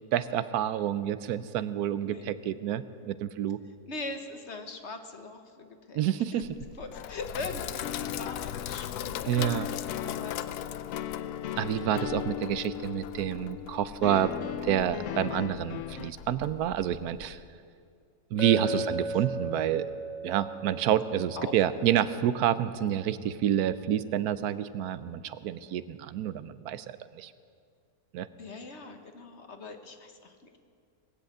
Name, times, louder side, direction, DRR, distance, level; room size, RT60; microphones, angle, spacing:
voice 1, 0.1-3.6 5.9-6.5 9.3-9.7 11.6-14.3 14.6-17.4 18.3-19.9 20.2-26.8 27.1-27.3 28.1-28.3, right 11 dB, 80° right, 14 dB, 1.1 m, -28 dB
voice 2, 2.0-2.3 3.8-6.0 6.3-6.4 6.8-11.3 11.7-12.1 18.5-18.8 19.1-19.2 21.4-21.5 28.4-30.6, left 3 dB, 50° left, 6 dB, 1.3 m, -42 dB
Sink (filling or washing), 6.4-17.4, left 11 dB, 85° left, 1.1 m, -40 dB
sound 1, 7.8-16.1, left 11 dB, 70° left, 0.8 m, -37 dB
Chink clink, 18.4-22.6, right 1 dB, 30° left, 1.0 m, -37 dB
19.5 x 7.9 x 8.4 m, 2.2 s
omnidirectional pair, 1.6 m